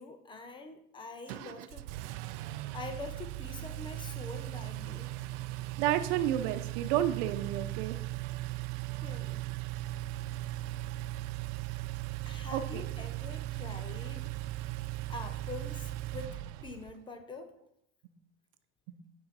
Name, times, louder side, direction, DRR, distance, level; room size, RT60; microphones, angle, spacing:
voice 1, 0.0-1.9 2.4-5.1 9.0-9.4 12.3-14.3 15.1-17.5, left 3 dB, 15° left, 7 dB, 0.4 m, -45 dB
Engine, 1.3-17.0, right 17 dB, 75° right, 0.5 m, -38 dB
voice 2, 5.8-8.0 12.5-12.8 16.1-16.2 18.9-19.0, right 11 dB, 60° right, 9 dB, 0.8 m, -31 dB
8.7 x 5.8 x 4.1 m, 0.77 s
cardioid pair, 170°, 36 cm